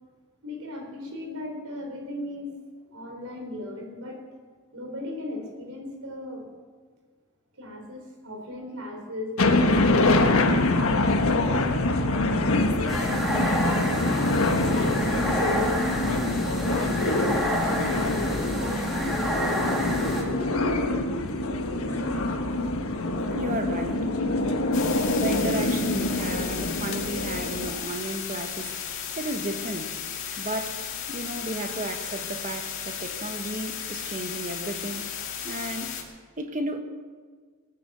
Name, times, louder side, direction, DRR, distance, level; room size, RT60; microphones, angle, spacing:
voice 1, 0.4-2.5 2.9-4.2 4.7-6.5 7.6-10.4 10.9-11.7 12.1-14.0 14.8-16.0 16.5-17.6 18.3-21.0 21.7-22.4, left 1 dB, 80° right, 3.9 m, -37 dB
sound 1, 9.4-27.7, left 2 dB, 75° left, 1.4 m, -25 dB
sound 2, 12.9-20.2, equal, ahead, 2.7 m, -28 dB
voice 2, 23.3-24.1 25.2-28.8 29.2-30.0 30.4-35.1 35.4-35.9 36.4-36.8, right 1 dB, 35° right, 1.4 m, -33 dB
sound 3, 24.7-36.0, left 8 dB, 60° left, 2.2 m, -35 dB
20.0 x 10.0 x 6.8 m
head